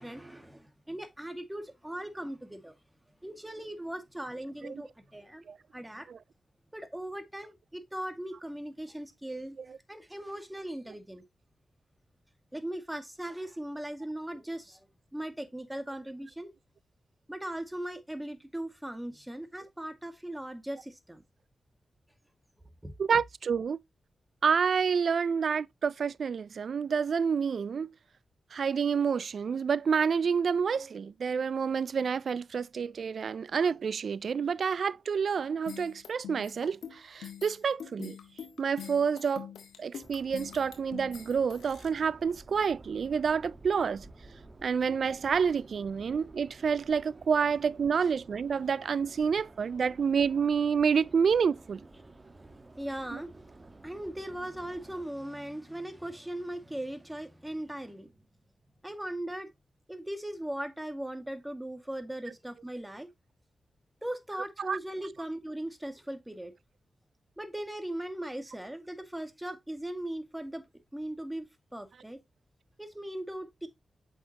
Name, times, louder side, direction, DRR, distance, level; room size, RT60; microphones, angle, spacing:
voice 1, 0.0-2.8 3.2-5.5 5.7-6.1 6.7-9.6 9.9-11.2 12.5-14.8 15.1-16.5 17.3-21.2 22.8-22.9 52.8-53.3 53.6-58.1 58.8-59.5 59.9-63.1 64.0-66.5 67.4-70.7 70.9-72.2 72.8-73.7, right 1 dB, 10° right, 2.0 m, -39 dB
voice 2, 23.0-23.8 24.4-27.9 28.5-38.2 38.6-39.5 39.8-44.1 44.6-51.8 53.1-53.2 64.6-64.8, right 6 dB, 70° right, 0.3 m, -28 dB
sound 1, 35.7-41.9, left 8 dB, 85° left, 1.5 m, -44 dB
Subway metro underground, 40.0-55.0, right 2 dB, 40° right, 1.4 m, -53 dB
8.1 x 5.7 x 2.9 m
supercardioid pair, 40°, 0 cm